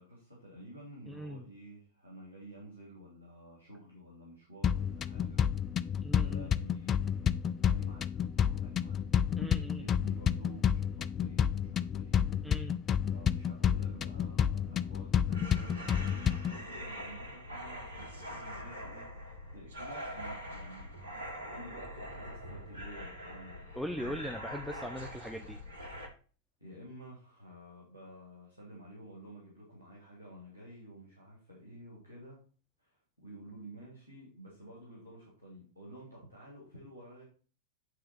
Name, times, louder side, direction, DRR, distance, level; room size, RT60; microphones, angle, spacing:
voice 1, 0.0-5.4 6.2-9.0 9.4-12.2 13.1-24.2 26.6-32.4 32.8-37.2, equal, 85° left, -4 dB, 2.8 m, -51 dB
voice 2, 1.1-1.4 6.0-6.5 9.4-9.8 12.4-12.7 23.8-25.6, equal, ahead, 4 dB, 0.7 m, -40 dB
sound 1, 4.6-16.6, left 8 dB, 25° left, 0.3 m, -30 dB
sound 2, 15.3-26.1, equal, 75° right, 1.7 m, -44 dB
9.8 x 3.8 x 4.3 m, 0.39 s
figure-of-eight pair, 90°, 0 cm